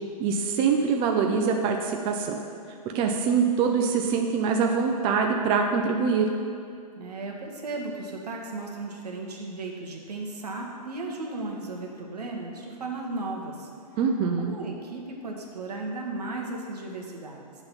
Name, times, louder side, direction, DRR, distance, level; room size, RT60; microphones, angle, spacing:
voice 1, 0.2-2.4 2.9-6.3 14.0-14.5, right 5 dB, 25° right, 2 dB, 0.5 m, -24 dB
voice 2, 7.0-13.7 14.4-17.5, right 2 dB, 75° right, 0 dB, 1.4 m, -35 dB
8.5 x 3.9 x 5.8 m, 2.3 s
hypercardioid pair, 125°, 20 cm